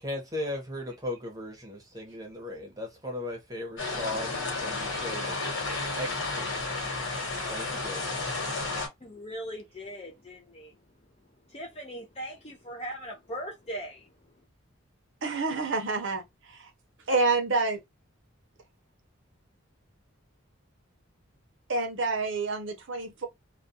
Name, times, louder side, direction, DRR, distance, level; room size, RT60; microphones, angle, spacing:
voice 1, 0.0-5.4 6.0-6.8 7.5-8.3, left 1 dB, 20° right, 0.8 m, -37 dB
sound 1, 3.8-8.9, left 3 dB, 65° left, 1.2 m, -32 dB
voice 2, 9.0-10.7 11.5-14.1, equal, 30° left, 0.5 m, -39 dB
voice 3, 15.2-16.2 16.5-16.7 17.1-17.8 21.7-23.3, right 3 dB, 65° right, 0.6 m, -28 dB
2.3 x 2.2 x 2.6 m
head